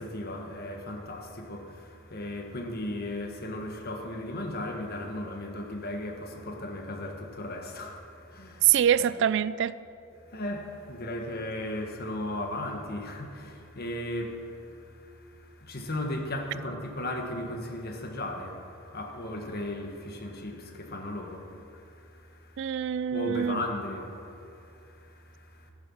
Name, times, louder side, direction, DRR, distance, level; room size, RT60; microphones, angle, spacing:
voice 1, 0.0-8.8 10.3-22.7 23.1-25.7, left 1 dB, 45° left, 1.5 m, -36 dB
voice 2, 8.6-9.8 22.6-23.6, right 10 dB, 55° right, 0.3 m, -24 dB
13.5 x 10.0 x 7.2 m
head